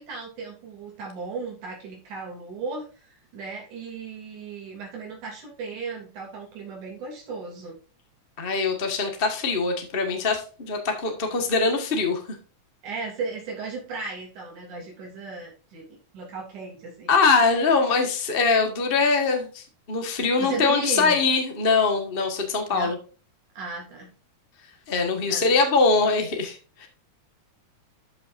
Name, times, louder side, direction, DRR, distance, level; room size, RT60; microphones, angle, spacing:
voice 1, 0.0-7.8 12.8-17.1 20.4-21.2 22.7-22.9 23.5-24.1 25.2-25.5, right 4 dB, 90° right, -2 dB, 4.3 m, -35 dB
voice 2, 8.4-12.4 17.1-23.0 24.9-26.9, left 4 dB, 30° left, 4 dB, 1.0 m, -23 dB
12.5 x 6.0 x 2.6 m, 0.35 s
omnidirectional pair, 3.4 m